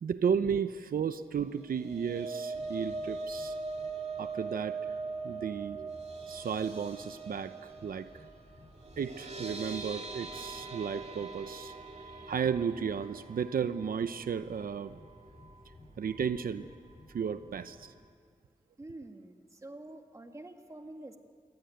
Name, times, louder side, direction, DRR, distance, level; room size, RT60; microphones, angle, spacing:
voice 1, 0.0-3.5 4.2-4.8 5.2-5.9 6.3-8.1 9.0-15.0 16.0-16.7 17.1-17.9, right 7 dB, 85° right, 12 dB, 0.8 m, -34 dB
sound 1, 1.5-15.8 16.1-16.3 16.6-16.8, right 3 dB, 45° right, 2.5 m, -41 dB
sound 2, 2.5-17.9, left 1 dB, 25° left, 6.0 m, -57 dB
voice 2, 18.8-21.2, right 2 dB, 20° right, 5 dB, 1.8 m, -47 dB
27.0 x 23.0 x 9.4 m, 2.2 s
wide cardioid pair, 165°, 15 cm